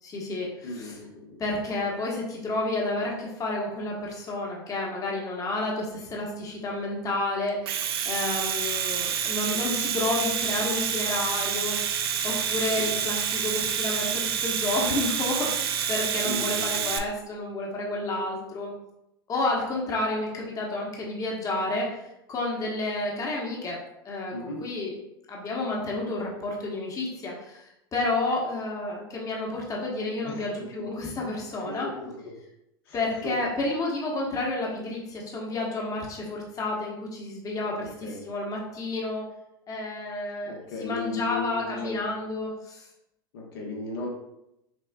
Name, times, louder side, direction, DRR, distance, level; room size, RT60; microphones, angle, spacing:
voice 1, 0.0-0.9 1.4-18.7 19.3-22.0 22.3-23.8 24.0-24.9 25.3-31.9 32.9-39.3 39.7-40.5 40.8-42.9, left 2 dB, 25° left, -2 dB, 1.0 m, -30 dB
voice 2, 0.6-1.3 12.8-12.9 16.2-17.0 24.3-24.6 30.2-30.5 31.5-32.1 32.8-33.3 37.8-38.2 40.5-42.0 43.3-44.1, left 2 dB, 70° left, -1 dB, 1.0 m, -36 dB
Domestic sounds home sounds, 7.5-17.0, right 8 dB, 75° right, 0.4 m, -28 dB
6.0 x 2.3 x 2.3 m, 0.85 s
hypercardioid pair, 100°, 13 cm